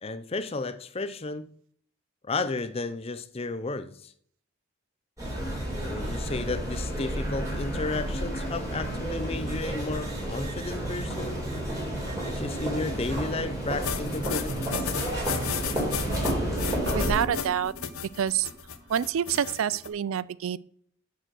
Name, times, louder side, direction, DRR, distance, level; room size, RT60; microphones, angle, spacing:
voice 1, 0.0-1.5 2.2-4.1 5.8-11.5 12.2-15.0, left 3 dB, 25° left, 0.5 m, -33 dB
sound 1, 5.2-17.1, right 1 dB, 15° right, 3.4 m, -31 dB
sound 2, 10.7-11.0 11.6-12.7 13.1-16.4 16.7-19.4, equal, 55° right, 3.9 m, -41 dB
sound 3, 13.8-19.9, left 7 dB, 80° left, 0.8 m, -34 dB
voice 2, 16.9-17.7 18.2-18.5 18.9-20.6, right 9 dB, 70° right, 0.4 m, -27 dB
6.7 x 6.5 x 6.0 m
head